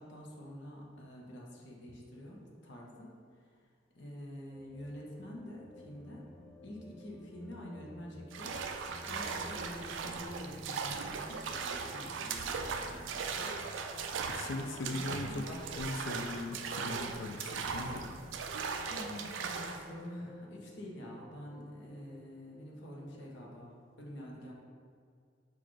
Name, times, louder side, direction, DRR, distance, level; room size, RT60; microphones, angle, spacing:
voice 1, 0.0-3.1 3.4-3.5 3.9-6.3 6.6-8.6 8.9-13.5 14.9-15.9 18.9-24.5, equal, 65° left, -2 dB, 0.8 m, -47 dB
sound 1, 4.5-23.7, left 1 dB, 10° left, 0.3 m, -56 dB
sound 2, 8.3-19.9, right 5 dB, 75° right, 0.3 m, -38 dB
voice 2, 14.3-15.5 15.8-18.1, left 2 dB, 85° left, 5 dB, 0.4 m, -39 dB
6.0 x 2.5 x 3.1 m, 2.1 s
head